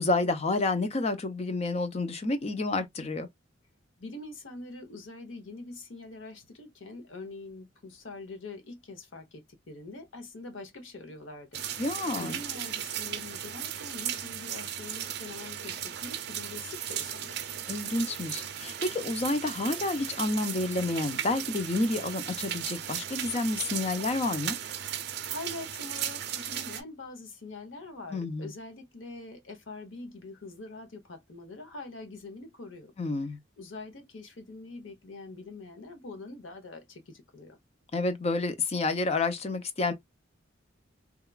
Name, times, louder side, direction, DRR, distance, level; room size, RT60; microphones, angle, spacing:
voice 1, 0.0-3.3 11.8-12.4 17.7-24.6 28.1-28.5 33.0-33.4 37.9-39.9, left 2 dB, 35° left, 0.5 m, -29 dB
voice 2, 4.0-11.6 12.2-17.4 25.3-32.9 33.6-37.6, left 2 dB, 85° left, 0.9 m, -44 dB
sound 1, 11.5-26.8, right 10 dB, 55° right, 0.5 m, -36 dB
2.9 x 2.4 x 2.2 m
head